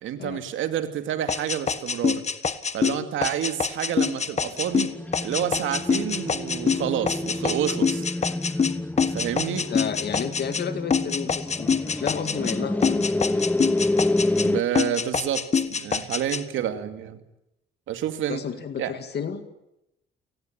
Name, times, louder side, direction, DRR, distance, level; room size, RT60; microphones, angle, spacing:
voice 1, 0.0-2.2 2.7-5.0 5.2-8.0 9.1-9.7 14.4-17.2 17.9-18.4 18.8-18.9, right 10 dB, 80° right, 9 dB, 2.5 m, -29 dB
sound 1, 1.3-10.6 10.9-12.6 12.8-14.5 14.8-16.4, left 5 dB, 35° left, 1.5 m, -25 dB
sound 2, 4.4-14.6, left 2 dB, 10° left, 1.0 m, -28 dB
voice 2, 9.7-13.4 18.3-19.4, left 7 dB, 55° left, 9 dB, 2.2 m, -32 dB
29.5 x 18.5 x 9.0 m, 0.86 s
cardioid pair, 90°, 20 cm